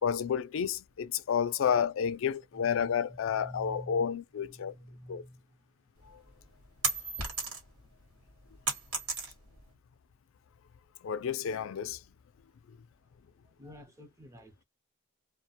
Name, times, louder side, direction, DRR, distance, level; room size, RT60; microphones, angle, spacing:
voice 1, 0.0-4.7 5.1-5.2 11.0-12.0, left 7 dB, 60° left, 0.3 m, -30 dB
voice 2, 2.5-4.1 4.5-5.4 13.6-14.5, equal, 15° right, 0.6 m, -48 dB
sound 1, 6.0-7.8 8.2-9.7, right 3 dB, 85° right, 1.4 m, -33 dB
2.3 x 2.1 x 2.7 m
head